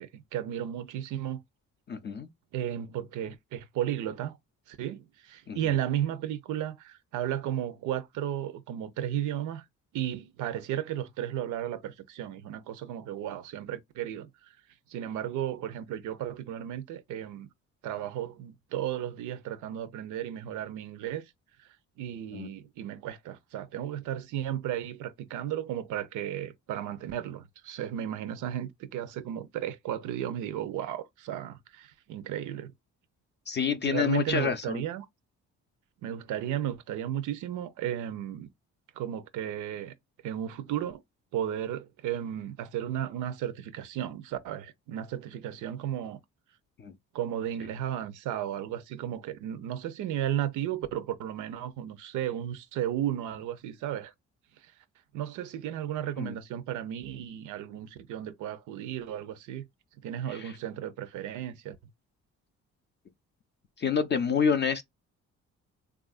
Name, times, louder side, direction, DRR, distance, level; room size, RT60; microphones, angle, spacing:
voice 1, 0.0-1.4 2.5-4.4 4.7-9.7 9.9-14.3 14.9-17.5 17.8-21.2 21.6-21.7 22.0-32.7 33.8-35.1 36.0-38.5 39.0-39.9 40.2-41.0 41.3-46.2 47.1-54.1 54.6-54.7 55.1-59.7 60.0-61.8, right 11 dB, 85° right, 0.6 m, -34 dB
voice 2, 1.9-2.3 5.5-5.6 22.3-22.5 33.5-34.8 46.8-46.9 56.2-56.3 60.3-60.5 63.8-64.8, left 6 dB, 35° left, 0.4 m, -28 dB
3.4 x 2.4 x 2.4 m
cardioid pair, 90°, 30 cm